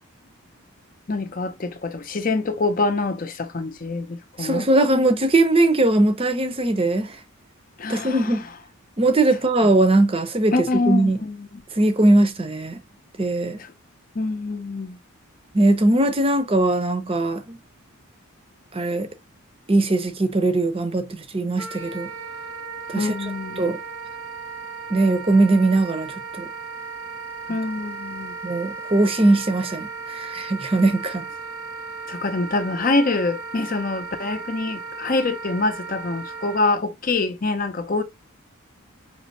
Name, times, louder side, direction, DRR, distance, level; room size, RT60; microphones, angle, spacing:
voice 1, 1.1-4.7 7.8-8.2 10.5-11.5 14.2-15.0 22.9-23.7 27.5-28.4 32.1-38.0, left 3 dB, 40° left, 0.6 m, -25 dB
voice 2, 4.4-7.2 7.9-8.5 9.0-11.2 11.8-12.8 13.2-13.6 15.5-17.6 18.7-19.1 19.7-22.1 22.9-23.8 24.9-26.5 27.5-27.6 28.4-31.2, right 2 dB, 25° right, 0.6 m, -20 dB
Wind instrument woodwind instrument, 21.6-36.6, right 4 dB, 75° right, 0.9 m, -36 dB
5.2 x 3.1 x 2.8 m
head